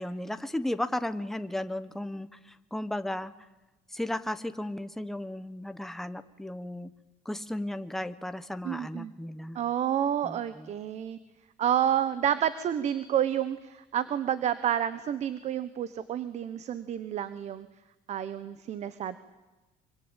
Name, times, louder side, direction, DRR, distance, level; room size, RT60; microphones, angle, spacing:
voice 1, 0.0-3.3 3.9-6.9 7.2-9.6 10.2-10.7, left 1 dB, ahead, 10 dB, 1.1 m, -35 dB
voice 2, 8.6-9.1 9.5-11.2 11.6-17.7 18.1-19.2, right 10 dB, 50° right, 14 dB, 1.2 m, -29 dB
25.5 x 25.0 x 9.1 m, 1.1 s
cardioid pair, 140°, 14 cm